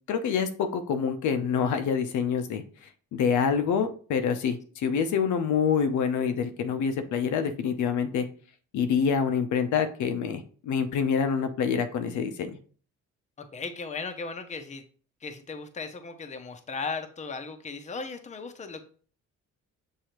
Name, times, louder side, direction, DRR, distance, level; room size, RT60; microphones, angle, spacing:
voice 1, 0.1-2.6 3.1-8.3 8.7-12.6, left 6 dB, 75° left, 8 dB, 0.6 m, -26 dB
voice 2, 13.4-14.8 15.2-18.8, left 4 dB, 25° left, 7 dB, 0.6 m, -36 dB
6.4 x 2.7 x 3.0 m, 0.42 s
cardioid pair, 90°, 30 cm